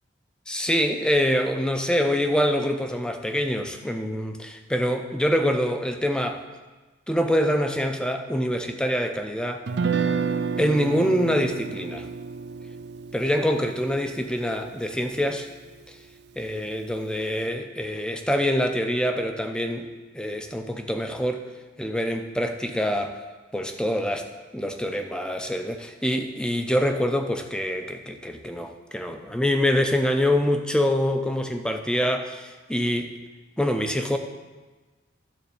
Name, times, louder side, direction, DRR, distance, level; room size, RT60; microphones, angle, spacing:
voice 1, 0.5-6.4 7.1-9.7 10.6-12.1 13.1-15.5 15.9-16.0 16.4-21.4 21.8-23.2 23.5-24.3 24.5-25.8 26.0-33.1 33.6-34.2, equal, 5° left, 5 dB, 0.5 m, -25 dB
Guitar, 9.7-15.8, right 5 dB, 60° right, 0.4 m, -31 dB
12.0 x 4.1 x 7.0 m, 1.3 s
head